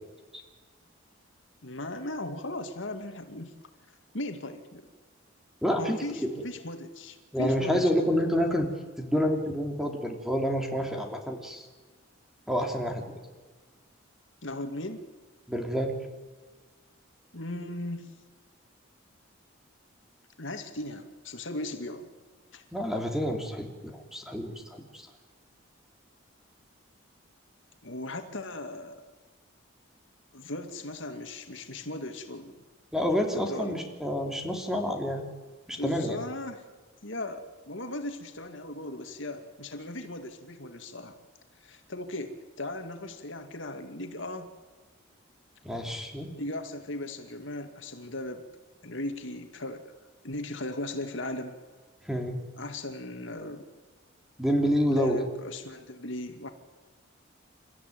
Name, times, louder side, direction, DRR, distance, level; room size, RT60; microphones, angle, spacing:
voice 1, 1.6-3.5 4.1-4.9 5.8-8.1 14.4-15.0 17.3-18.1 20.4-22.1 22.5-22.6 27.8-29.0 30.3-32.6 33.3-33.8 35.8-36.7 37.0-41.2 41.6-44.5 46.4-48.5 48.8-49.8 50.2-51.6 52.6-53.6 54.9-56.5, left 1 dB, 65° left, 6 dB, 2.4 m, -37 dB
voice 2, 5.6-6.3 7.3-8.7 9.0-11.6 12.5-13.0 15.5-15.9 22.7-25.1 32.9-35.2 35.7-36.2 45.6-46.3 52.0-52.4 54.4-55.2, equal, ahead, 3 dB, 3.0 m, -28 dB
29.5 x 14.5 x 9.3 m, 1.4 s
head